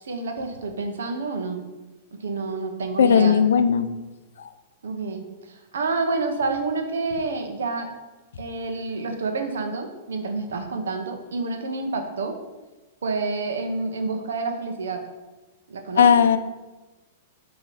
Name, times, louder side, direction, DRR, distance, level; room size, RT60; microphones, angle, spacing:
voice 1, 0.0-1.6 2.1-3.4 4.8-7.9 8.4-12.4 13.0-15.0 15.7-16.1, right 3 dB, 85° right, 5 dB, 1.0 m, -28 dB
voice 2, 3.0-3.9 4.4-4.5 16.0-16.4, left 7 dB, 80° left, 11 dB, 0.5 m, -17 dB
7.6 x 3.1 x 4.9 m, 1.1 s
hypercardioid pair, 130°, 0 cm